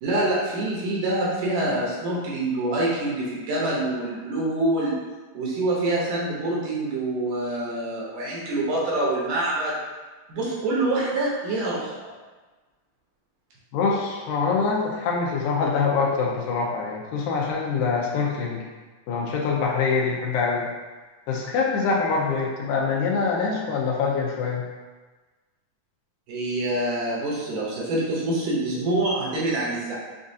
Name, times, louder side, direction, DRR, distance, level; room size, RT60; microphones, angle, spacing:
voice 1, 0.0-5.0 5.3-9.7 10.3-12.1 26.3-29.9, right 2 dB, 70° right, -6 dB, 2.3 m, -26 dB
voice 2, 13.7-18.6 19.1-20.6 21.3-24.7, left 5 dB, 85° left, -2 dB, 2.4 m, -24 dB
6.2 x 2.5 x 2.7 m, 1.3 s
omnidirectional pair, 4.0 m